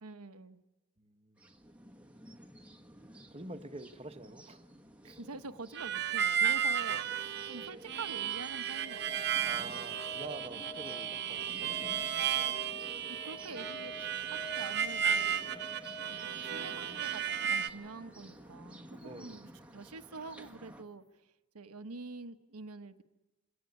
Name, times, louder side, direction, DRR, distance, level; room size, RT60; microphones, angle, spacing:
voice 1, 0.0-0.6 5.0-7.0 7.5-9.4 13.1-21.0 21.5-23.0, right 3 dB, 85° right, 9 dB, 1.1 m, -46 dB
voice 2, 1.0-1.5 3.3-4.6 6.9-7.0 9.4-12.5 19.0-19.5, right 2 dB, 25° right, 7 dB, 1.3 m, -48 dB
sound 1, 1.4-20.8, right 1 dB, 5° right, 1.4 m, -53 dB
Harmonica, 5.7-17.7, right 8 dB, 50° right, 0.9 m, -34 dB
sound 2, 8.3-18.1 20.4-20.5, left 1 dB, 20° left, 0.9 m, -50 dB
26.0 x 18.5 x 9.8 m, 1.1 s
head